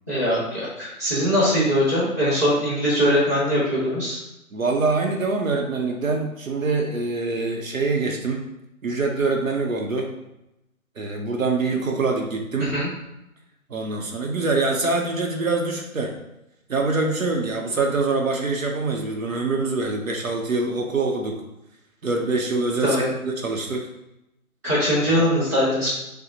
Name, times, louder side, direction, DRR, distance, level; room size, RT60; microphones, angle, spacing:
voice 1, 0.1-4.2 12.7-12.9 22.8-23.1 24.6-25.9, equal, 10° right, -13 dB, 0.9 m, -21 dB
voice 2, 4.5-8.4 8.8-10.1 11.0-12.7 13.7-16.1 16.7-21.3 22.0-23.9 25.2-25.3, right 3 dB, 70° right, 2 dB, 0.7 m, -24 dB
5.8 x 2.1 x 2.8 m, 0.88 s
figure-of-eight pair, 160°, 43 cm